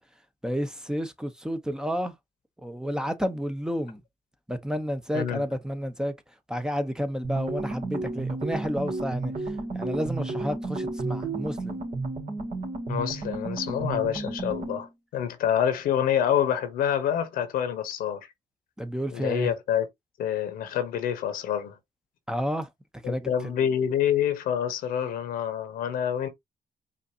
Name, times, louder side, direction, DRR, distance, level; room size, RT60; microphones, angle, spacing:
voice 1, 0.4-2.1 2.6-4.0 4.5-6.1 6.5-9.3 9.7-11.8 18.8-19.5 22.3-22.7 23.1-23.3, equal, 5° right, 0.8 m, -30 dB
voice 2, 5.1-5.4 12.9-18.2 19.1-19.9 20.2-21.8 23.0-26.3, left 9 dB, 85° left, 1.0 m, -27 dB
sound 1, 7.2-14.9, right 2 dB, 55° right, 1.9 m, -32 dB
5.1 x 2.6 x 2.8 m
supercardioid pair, 60°, 15 cm